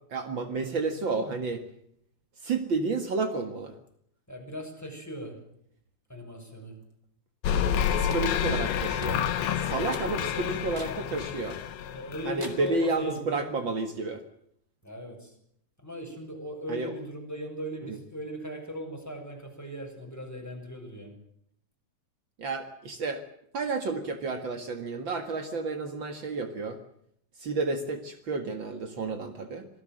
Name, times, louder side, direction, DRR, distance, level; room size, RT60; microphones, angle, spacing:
voice 1, 0.1-1.6 2.4-3.7 7.9-9.2 9.6-11.6 12.2-14.2 16.7-16.9 17.8-18.0 22.4-23.2 23.5-26.8 27.4-29.7, right 3 dB, 80° right, 8 dB, 1.0 m, -31 dB
voice 2, 4.3-5.4 6.1-6.8 9.8-10.4 11.9-13.4 14.8-15.4 15.8-21.2, equal, 5° left, 2 dB, 6.4 m, -39 dB
sound 1, 7.4-12.9, left 8 dB, 75° left, 3.5 m, -29 dB
sound 2, 8.1-8.3 9.0-9.4 9.9-10.1 10.7-11.0 11.5-11.6 12.4-12.8, right 2 dB, 20° right, 2.3 m, -43 dB
26.5 x 18.5 x 7.8 m, 0.70 s
omnidirectional pair, 5.3 m